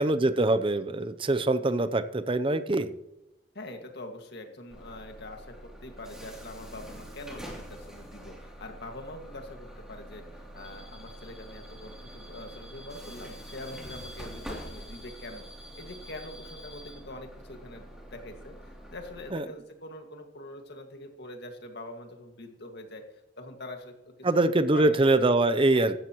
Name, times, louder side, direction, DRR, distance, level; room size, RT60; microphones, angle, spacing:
voice 1, 0.0-2.9 19.3-19.4 24.2-25.9, right 2 dB, 30° right, 12 dB, 0.6 m, -24 dB
voice 2, 3.5-23.0 23.4-25.0 25.6-25.9, left 1 dB, 60° left, 4 dB, 2.0 m, -44 dB
Bus / Alarm, 4.7-19.3, equal, 5° right, 3.0 m, -45 dB
15.5 x 13.0 x 3.1 m, 0.92 s
head